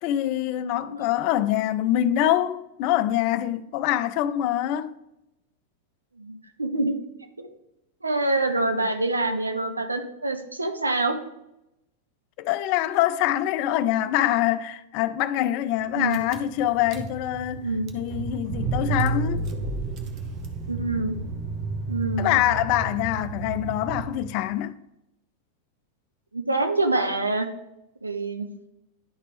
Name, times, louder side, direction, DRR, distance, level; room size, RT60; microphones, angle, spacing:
voice 1, 0.0-5.0 12.4-17.7 17.9-19.5 22.2-24.7, left 12 dB, 45° left, 0.4 m, -24 dB
voice 2, 6.2-6.9 7.4-7.5 8.0-11.2 15.9-16.2 17.6-17.9 20.7-21.1 21.9-22.4 26.3-27.5 28.0-28.5, right 2 dB, 80° right, 0.7 m, -26 dB
Car / Engine, 15.8-15.9 16.1-24.5, right 3 dB, 35° right, 0.9 m, -31 dB
10.5 x 4.1 x 3.4 m
figure-of-eight pair, 90°, 0 cm